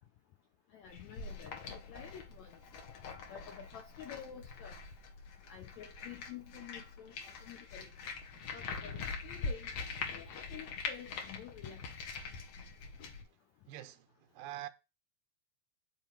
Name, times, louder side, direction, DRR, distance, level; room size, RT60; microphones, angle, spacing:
voice 1, 0.7-2.6 3.3-4.8 5.5-7.9 8.5-9.8 10.1-11.9, left 9 dB, 80° left, 1.6 m, -50 dB
sound 1, 0.9-13.2, left 4 dB, 60° left, 1.8 m, -44 dB
voice 2, 13.7-14.1 14.3-14.7, right 14 dB, 90° right, 2.5 m, -44 dB
10.0 x 3.9 x 4.5 m
omnidirectional pair, 4.1 m